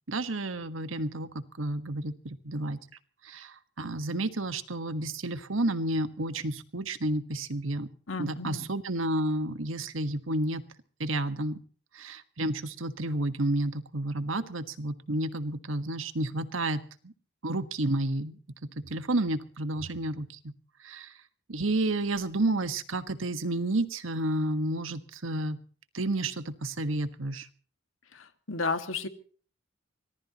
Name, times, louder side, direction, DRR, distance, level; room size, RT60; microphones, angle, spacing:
voice 1, 0.1-2.8 3.2-7.9 8.2-10.6 11.0-11.6 11.9-17.1 17.4-18.3 18.9-20.4 20.8-21.1 21.5-25.6 25.9-27.5, right 1 dB, 85° right, 10 dB, 1.5 m, -31 dB
voice 2, 8.1-8.7 28.1-29.1, left 3 dB, 85° left, 8 dB, 1.9 m, -33 dB
24.5 x 19.0 x 3.0 m, 0.42 s
head